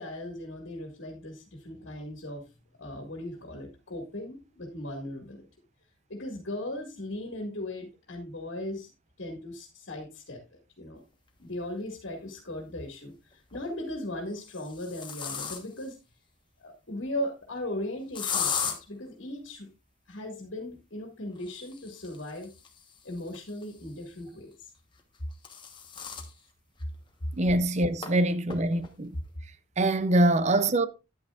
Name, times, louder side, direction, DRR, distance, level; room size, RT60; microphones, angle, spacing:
voice 1, 0.0-2.4 2.8-5.5 6.1-8.9 9.2-10.4 10.8-11.0 11.4-13.1 13.5-16.0 16.6-19.7 20.1-22.5 23.0-24.7, left 1 dB, 75° left, 2.0 m, -38 dB
sound 1, 11.8-11.9 13.3-13.7 14.3-15.9 18.1-18.8 21.3-24.0 25.0-26.3 26.8-26.9 27.2-27.3 28.0-28.1 28.5-28.9, left 7 dB, 25° left, 1.2 m, -36 dB
voice 2, 27.3-29.1 29.8-30.9, right 1 dB, 35° right, 0.6 m, -24 dB
10.5 x 9.0 x 2.5 m
head